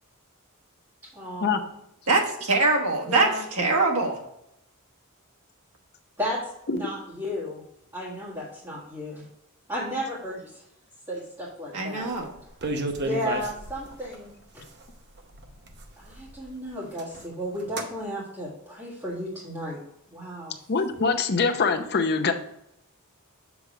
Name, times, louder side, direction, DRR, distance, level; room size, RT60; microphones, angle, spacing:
voice 1, 1.0-1.6 3.0-3.4 6.2-7.6 7.9-9.2 9.7-10.6 11.1-12.1 13.0-14.7 16.0-19.8 20.1-20.5, equal, 15° right, -8 dB, 1.8 m, -34 dB
voice 2, 2.1-4.2 11.7-12.3, right 3 dB, 80° right, -1 dB, 1.4 m, -23 dB
sound 1, 12.1-12.2 12.4-14.2 14.8-14.9 15.2-16.5 16.8-17.3 17.6-17.9, right 2 dB, 50° right, 0.8 m, -32 dB
voice 3, 20.7-22.3, left 4 dB, 50° left, 6 dB, 0.7 m, -23 dB
7.1 x 3.4 x 4.9 m, 0.80 s
head